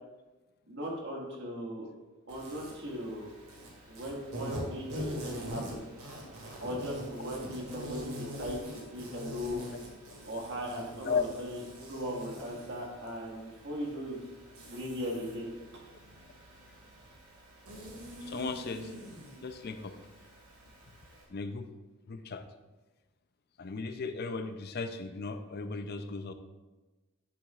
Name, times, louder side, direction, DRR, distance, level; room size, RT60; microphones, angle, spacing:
voice 1, 0.7-1.9 2.3-3.3 3.9-5.9 6.6-8.6 8.9-9.6 10.2-11.6 11.9-14.2 14.7-15.5 15.7-15.8, equal, 55° right, -2 dB, 1.8 m, -38 dB
Insect, 2.3-21.2, equal, 85° right, 2.2 m, -44 dB
voice 2, 18.2-18.9 19.4-20.0 21.3-21.7 22.1-22.4 23.6-26.3, left 4 dB, 45° left, 9 dB, 0.5 m, -35 dB
10.0 x 7.1 x 2.4 m, 1.2 s
head